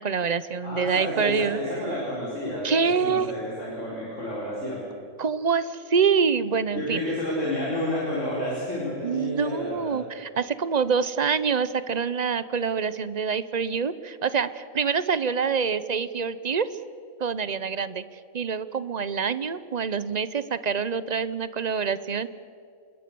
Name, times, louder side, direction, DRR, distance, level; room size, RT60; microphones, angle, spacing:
voice 1, 0.0-1.9 2.6-3.3 5.2-7.0 9.0-16.7 17.2-22.3, right 6 dB, 35° right, 15 dB, 0.7 m, -26 dB
voice 2, 0.6-4.8 6.7-10.0, left 1 dB, 60° left, -5 dB, 5.2 m, -30 dB
27.5 x 21.0 x 7.0 m, 2.3 s
omnidirectional pair, 1.5 m